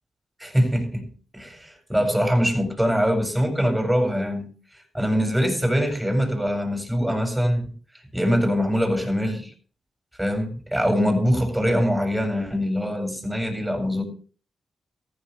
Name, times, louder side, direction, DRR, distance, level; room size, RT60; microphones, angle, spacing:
voice 1, 0.4-1.1 1.3-4.5 4.9-7.6 8.1-9.5 10.2-14.0, equal, 10° right, 6 dB, 7.9 m, -23 dB
16.5 x 15.0 x 3.4 m, 0.40 s
cardioid pair, 50°, 0 cm